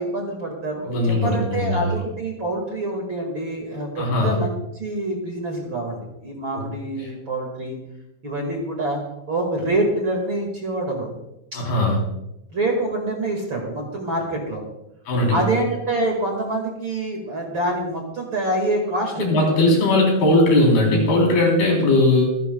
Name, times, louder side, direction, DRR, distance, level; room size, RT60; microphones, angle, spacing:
voice 1, 0.0-7.8 8.2-9.0 9.3-11.1 11.5-11.6 12.5-14.6 15.3-19.5, right 1 dB, 40° right, 1 dB, 2.2 m, -26 dB
voice 2, 0.9-1.9 4.0-4.4 6.5-6.6 11.5-12.0 15.1-15.4 19.2-22.4, left 2 dB, 80° left, -1 dB, 5.7 m, -19 dB
26.0 x 10.5 x 2.3 m, 0.87 s
omnidirectional pair, 4.3 m